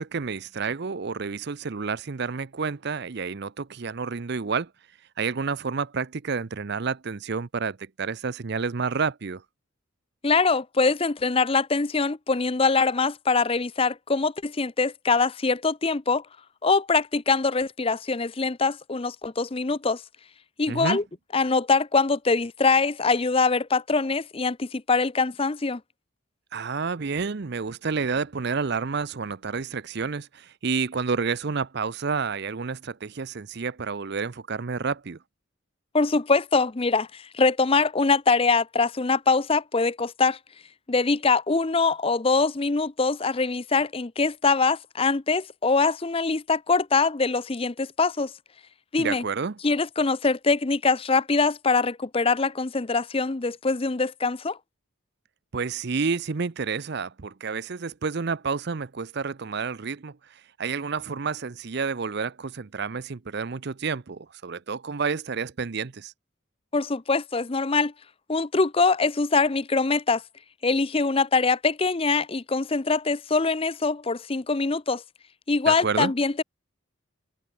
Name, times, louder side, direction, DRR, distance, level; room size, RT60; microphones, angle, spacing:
voice 1, 0.0-4.7 5.2-9.4 20.7-21.0 26.5-35.2 49.0-49.6 55.5-66.1 75.7-76.1, right 5 dB, 50° right, 0.6 m, -30 dB
voice 2, 10.2-16.2 16.6-20.0 20.6-21.0 21.3-25.8 35.9-40.4 40.9-48.3 48.9-49.2 49.6-54.6 66.7-67.9 68.3-70.2 70.6-75.0 75.5-76.4, left 4 dB, 25° left, 0.6 m, -23 dB
head